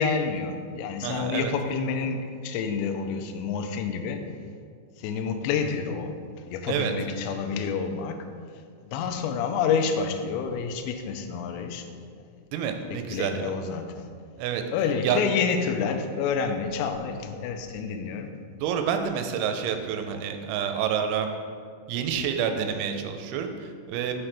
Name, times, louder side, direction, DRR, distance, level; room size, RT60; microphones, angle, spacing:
voice 1, 0.0-4.2 5.0-8.3 8.8-11.9 12.9-14.1 14.7-18.3, left 6 dB, 85° left, 6 dB, 2.5 m, -28 dB
voice 2, 1.0-1.5 6.7-6.9 12.5-13.5 14.4-14.6 15.0-15.2 18.6-21.3 21.9-24.1, right 8 dB, 85° right, 6 dB, 2.9 m, -28 dB
6.1 x 5.8 x 3.3 m, 2.1 s
omnidirectional pair, 5.5 m